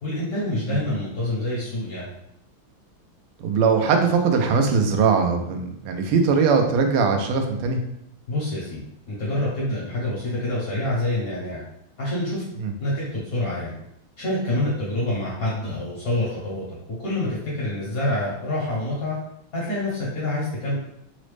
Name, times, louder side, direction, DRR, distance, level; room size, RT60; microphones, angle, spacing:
voice 1, 0.0-2.1 8.3-8.8 9.1-11.6 12.0-12.4 12.8-13.7 14.2-16.6 17.0-19.2 19.5-20.8, left 1 dB, 60° left, -7 dB, 0.9 m, -26 dB
voice 2, 3.4-7.8 12.6-12.7, right 5 dB, 85° right, 4 dB, 1.5 m, -20 dB
3.9 x 2.0 x 3.1 m, 0.76 s
omnidirectional pair, 2.4 m